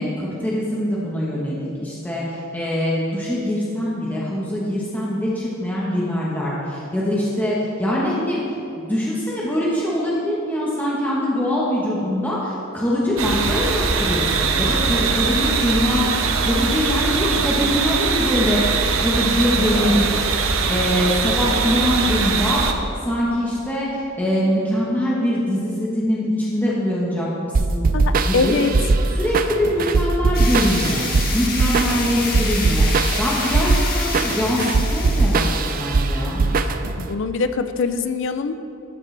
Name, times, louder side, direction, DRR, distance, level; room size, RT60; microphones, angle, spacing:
voice 1, 0.0-8.4 8.7-20.3 20.7-22.8 23.0-27.9 28.2-28.6 29.1-31.1 31.3-32.9 33.2-36.4, left 1 dB, 10° left, -6 dB, 1.1 m, -23 dB
sound 1, 13.2-22.7, right 4 dB, 75° right, 0.7 m, -21 dB
sound 2, 27.5-37.1, right 3 dB, 45° right, 0.4 m, -20 dB
voice 2, 27.9-28.7 36.4-36.6 37.0-38.5, left 4 dB, 60° left, 10 dB, 0.5 m, -23 dB
sound 3, 30.3-35.8, left 3 dB, 45° left, 1.5 m, -28 dB
12.5 x 7.4 x 3.3 m, 2.7 s
head